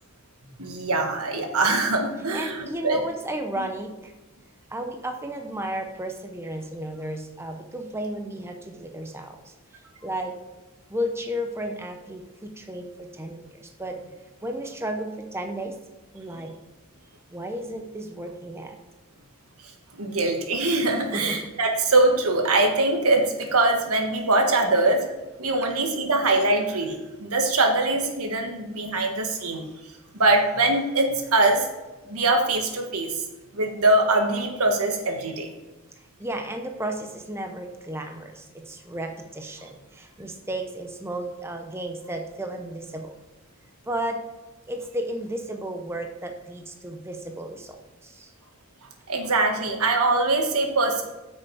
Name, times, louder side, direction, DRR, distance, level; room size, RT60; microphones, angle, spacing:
voice 1, 0.6-3.0 20.0-25.0 25.4-29.6 30.2-31.7 32.1-33.2 33.5-35.5 49.1-51.0, right 2 dB, 90° right, 3 dB, 1.6 m, -22 dB
voice 2, 2.2-4.1 4.7-10.4 10.9-14.0 14.4-15.8 16.1-16.5 17.3-18.8 21.1-21.5 36.2-43.1 43.9-44.2 44.7-48.3, right 1 dB, 10° right, 4 dB, 0.7 m, -33 dB
9.1 x 6.3 x 4.8 m, 1.1 s
head